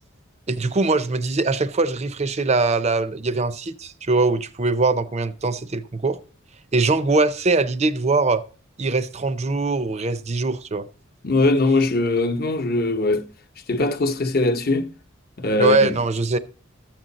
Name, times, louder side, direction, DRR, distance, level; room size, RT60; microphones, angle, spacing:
voice 1, 0.5-6.2 6.7-8.4 8.8-10.9 15.6-16.4, right 3 dB, 35° right, 0.6 m, -22 dB
voice 2, 11.2-13.3 13.7-14.9 15.4-16.0, left 2 dB, 50° left, 0.9 m, -21 dB
13.5 x 7.6 x 4.0 m
head